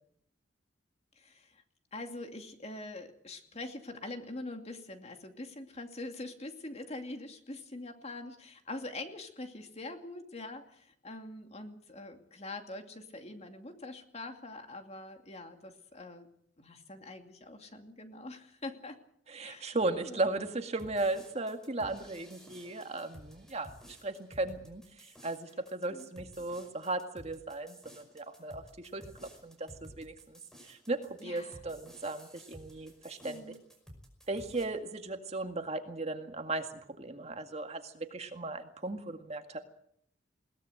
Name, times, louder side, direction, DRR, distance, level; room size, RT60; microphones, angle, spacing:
voice 1, 1.2-1.6 1.9-16.3 16.6-19.0 19.4-19.8 20.0-20.3 25.9-26.1 31.2-31.6 33.2-33.7, left 2 dB, 35° left, 5 dB, 2.5 m, -44 dB
voice 2, 19.3-29.0 29.4-29.7 30.0-33.5 34.3-36.7 37.0-39.6, right 2 dB, 35° right, 6 dB, 2.0 m, -36 dB
sound 1, 20.8-34.7, equal, 5° left, 5.5 m, -54 dB
21.5 x 18.5 x 8.0 m, 0.69 s
head